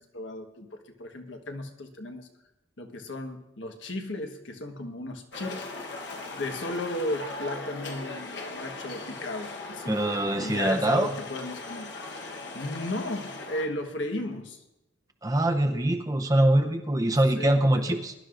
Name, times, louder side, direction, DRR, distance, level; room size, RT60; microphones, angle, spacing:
voice 1, 0.0-2.3 2.8-5.7 6.4-10.0 10.4-11.9 12.5-14.6 17.4-18.0, left 1 dB, 85° left, 4 dB, 1.4 m, -35 dB
sound 1, 5.3-13.7, left 3 dB, 70° left, 1.2 m, -39 dB
voice 2, 9.9-11.1 15.2-18.1, right 1 dB, 20° right, 6 dB, 0.7 m, -23 dB
21.5 x 11.5 x 2.6 m, 0.93 s
head